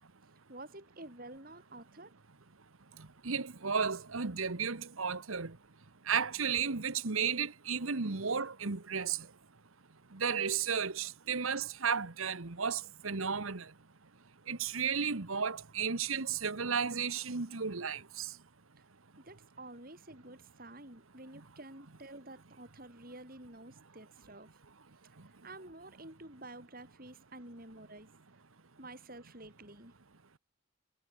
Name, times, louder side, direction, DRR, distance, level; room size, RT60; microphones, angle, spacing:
voice 1, 0.5-2.1 18.8-18.9 19.2-24.5 25.3-28.1 28.8-30.0, right 2 dB, 45° right, 4.9 m, -50 dB
voice 2, 3.2-5.5 6.1-9.2 10.1-13.6 14.5-18.3, right 6 dB, 90° right, 1.4 m, -33 dB
head